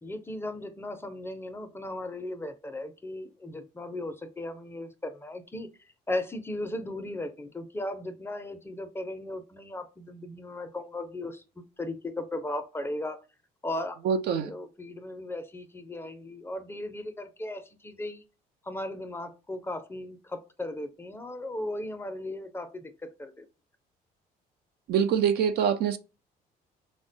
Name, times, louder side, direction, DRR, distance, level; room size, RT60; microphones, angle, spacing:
voice 1, 0.0-5.7 6.1-13.2 13.6-14.0 14.3-18.2 18.6-22.9 23.2-23.5, left 1 dB, 15° left, 0.4 m, -36 dB
voice 2, 14.0-14.5 24.9-26.0, right 8 dB, 70° right, 0.5 m, -24 dB
3.6 x 2.1 x 2.6 m
cardioid pair, 110°, 17 cm